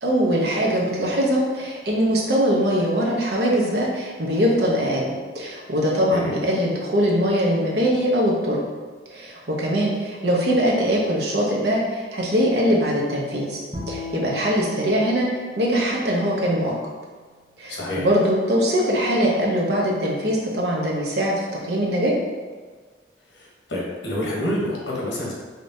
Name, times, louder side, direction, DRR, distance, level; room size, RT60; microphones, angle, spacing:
voice 1, 0.0-8.6 9.1-13.6 13.9-15.3 15.6-16.7 17.6-22.1, equal, 65° right, -3 dB, 0.8 m, -22 dB
Bowed string instrument, 13.7-17.0, left 2 dB, 20° right, 0.8 m, -38 dB
voice 2, 17.7-18.1 23.3-25.3, left 1 dB, 75° left, -4 dB, 1.2 m, -28 dB
4.9 x 2.9 x 2.7 m, 1.5 s
head